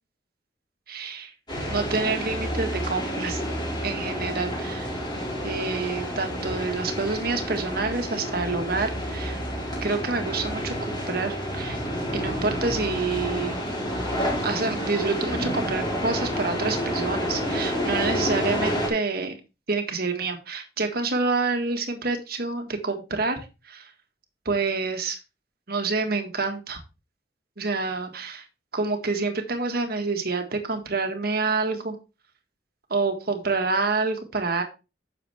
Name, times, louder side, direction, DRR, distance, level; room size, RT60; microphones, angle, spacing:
voice 1, 0.9-1.3 1.7-3.4 3.8-4.9 5.4-9.4 9.8-11.8 12.1-13.6 14.4-19.4 19.7-23.9 24.5-25.2 25.7-26.8 27.6-28.4 28.7-32.0 32.9-34.6, right 3 dB, 55° right, 5 dB, 1.8 m, -27 dB
sound 1, 1.5-18.9, equal, 25° left, 4.2 m, -29 dB
10.0 x 6.9 x 3.5 m, 0.29 s
head